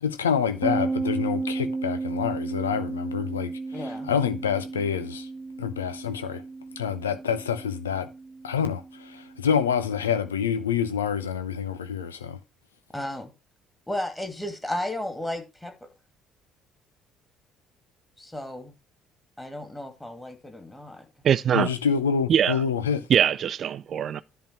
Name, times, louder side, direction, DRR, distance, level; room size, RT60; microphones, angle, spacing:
voice 1, 0.0-5.3 5.6-6.4 6.8-8.1 8.4-12.4 21.5-23.1, left 7 dB, 80° left, 0.7 m, -27 dB
sound 1, 0.6-10.1, right 3 dB, 10° right, 1.0 m, -33 dB
voice 2, 3.7-4.1 12.9-13.3 13.9-15.7 18.2-18.8 19.4-21.1, left 1 dB, 10° left, 2.4 m, -34 dB
voice 3, 21.2-21.7 22.3-22.6 23.1-24.2, right 9 dB, 45° right, 0.5 m, -22 dB
10.5 x 3.9 x 5.7 m
figure-of-eight pair, 50°, 0 cm